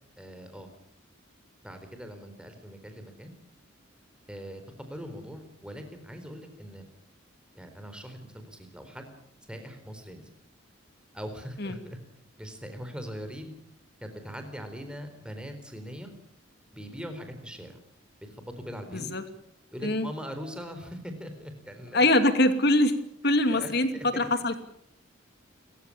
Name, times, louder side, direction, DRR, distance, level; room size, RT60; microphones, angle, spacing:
voice 1, 0.2-0.7 1.6-3.3 4.3-6.8 7.5-9.1 9.5-10.3 11.1-11.8 12.4-13.5 14.0-16.1 16.7-17.8 18.2-19.1 19.7-22.1 23.5-24.3, equal, 5° right, 6 dB, 4.1 m, -41 dB
voice 2, 18.9-19.2 19.8-20.1 21.9-23.0 23.2-23.9 24.2-24.6, left 1 dB, 50° left, 9 dB, 2.6 m, -23 dB
30.0 x 15.0 x 8.7 m, 0.70 s
head